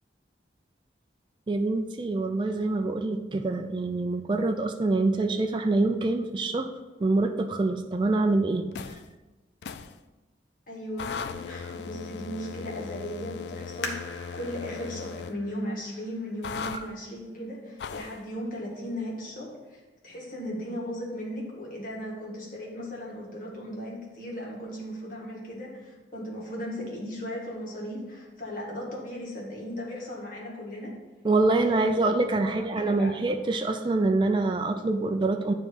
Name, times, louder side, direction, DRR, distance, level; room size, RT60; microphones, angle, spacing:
voice 1, 1.5-6.7 7.0-8.7 16.7-16.9 31.2-35.5, right 2 dB, 25° right, 5 dB, 0.3 m, -25 dB
sound 1, 8.7-9.1 9.6-9.9 11.0-15.3 16.4-16.8 17.8-18.2, left 6 dB, 65° left, 0.3 m, -38 dB
voice 2, 10.7-30.9 31.5-31.9 32.5-33.2, equal, 45° left, -3 dB, 1.7 m, -37 dB
sound 2, 13.8-17.2 17.8-17.9 18.5-18.9 19.3-19.4, left 2 dB, 85° left, 1.0 m, -42 dB
9.2 x 3.1 x 5.2 m, 1.2 s
head